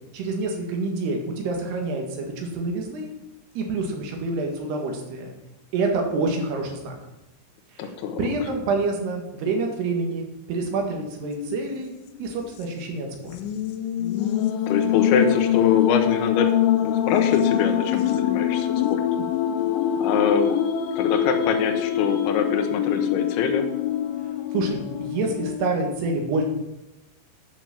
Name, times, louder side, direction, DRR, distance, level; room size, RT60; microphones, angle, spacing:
voice 1, 0.1-3.1 3.6-5.3 5.7-7.0 7.8-7.9 8.2-11.9 12.2-13.4 24.5-26.4, right 3 dB, 65° right, 2 dB, 3.6 m, -27 dB
voice 2, 7.8-8.3 14.7-16.5 16.8-19.0 20.0-20.5 21.0-23.7, left 6 dB, 75° left, 4 dB, 2.7 m, -24 dB
sound 1, 11.2-11.8 12.2-12.3 13.3-25.7, left 10 dB, 90° left, 3.1 m, -24 dB
10.5 x 6.1 x 7.6 m, 0.95 s
omnidirectional pair, 5.3 m